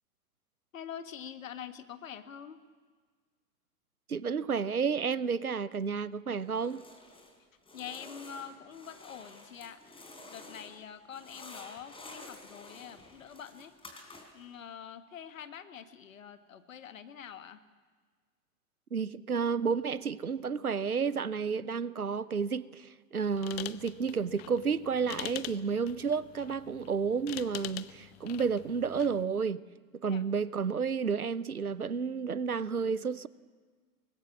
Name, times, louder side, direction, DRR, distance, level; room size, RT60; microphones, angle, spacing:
voice 1, 0.7-2.6 7.7-13.7 14.3-17.6 30.0-30.3, left 8 dB, 65° left, 1.7 m, -45 dB
voice 2, 4.1-6.8 18.9-29.6 30.0-33.3, right 6 dB, 90° right, 0.8 m, -31 dB
sound 1, 6.5-7.4 7.6-10.8 11.1-14.5, left 2 dB, 10° left, 4.0 m, -51 dB
sound 2, 23.3-29.2, left 15 dB, 45° left, 0.9 m, -45 dB
24.0 x 20.0 x 7.3 m
figure-of-eight pair, 100°, 42 cm